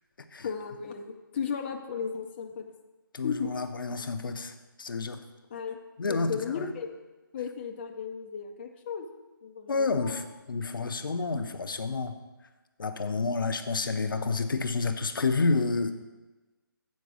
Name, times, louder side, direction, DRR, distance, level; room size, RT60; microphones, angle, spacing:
voice 1, 0.4-2.7 3.2-3.5 5.5-5.8 6.1-6.9 7.3-9.1 9.4-10.2, left 6 dB, 30° left, 2 dB, 0.5 m, -35 dB
voice 2, 3.1-5.2 6.0-6.7 9.7-12.2 12.8-15.9, left 4 dB, 70° left, 8 dB, 0.7 m, -29 dB
8.3 x 4.6 x 6.3 m, 1.2 s
figure-of-eight pair, 155°, 12 cm